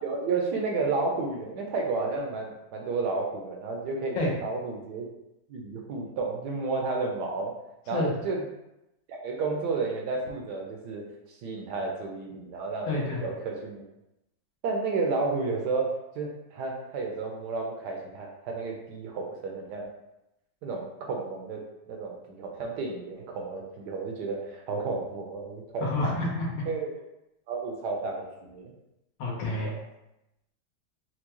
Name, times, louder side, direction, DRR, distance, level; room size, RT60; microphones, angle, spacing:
voice 1, 0.0-5.1 5.5-7.5 7.9-8.4 9.1-11.0 11.3-13.8 14.6-19.9 20.6-21.6 21.9-26.1 26.6-26.9 27.5-28.7 29.6-29.8, right 3 dB, 70° right, 1 dB, 1.1 m, -32 dB
voice 2, 12.8-13.2 25.8-26.6 29.2-29.7, left 2 dB, 80° left, -3 dB, 1.7 m, -29 dB
4.4 x 2.2 x 2.9 m, 0.89 s
omnidirectional pair, 2.1 m